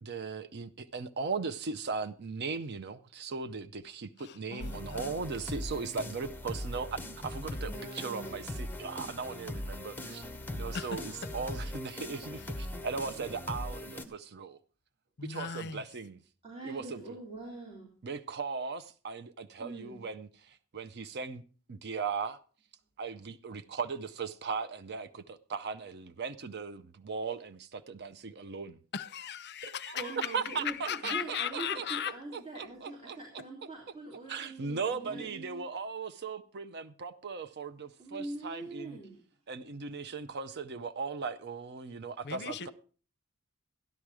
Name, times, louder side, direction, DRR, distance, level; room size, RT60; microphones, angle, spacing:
voice 1, 0.0-10.2 10.5-14.6 15.2-16.2 16.6-17.0 18.0-21.4 21.7-22.4 23.0-28.8 29.6-31.8 32.3-33.2 34.3-39.0 39.5-42.7, right 5 dB, 50° right, 0.6 m, -38 dB
voice 2, 4.2-5.2 10.7-11.3 15.2-15.9 28.9-32.1 42.2-42.7, left 8 dB, 50° left, 0.6 m, -38 dB
sound 1, 4.6-14.1, left 1 dB, 10° left, 0.9 m, -40 dB
voice 3, 7.5-8.5 16.4-17.9 19.6-20.0 29.9-35.7 38.0-39.2, right 2 dB, 25° right, 3.1 m, -43 dB
13.5 x 10.5 x 4.8 m
head